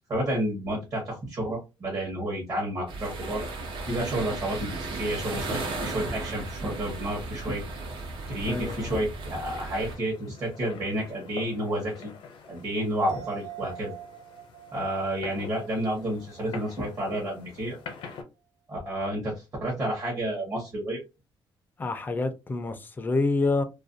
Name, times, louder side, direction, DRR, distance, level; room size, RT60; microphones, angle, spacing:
voice 1, 0.1-3.4 3.9-7.6 8.3-12.1 12.5-13.9 14.7-17.8 18.7-21.0, right 1 dB, 40° right, 0.9 m, -30 dB
sound 1, 2.9-10.0, right 3 dB, 70° right, 0.8 m, -35 dB
sound 2, 8.3-18.2, left 5 dB, 80° left, 0.6 m, -45 dB
voice 2, 8.5-8.9 21.8-23.6, left 3 dB, 20° left, 0.4 m, -27 dB
sound 3, 13.1-16.8 17.1-17.2, right 11 dB, 55° right, 0.3 m, -43 dB
2.4 x 2.1 x 2.5 m
cardioid pair, 145°, 9 cm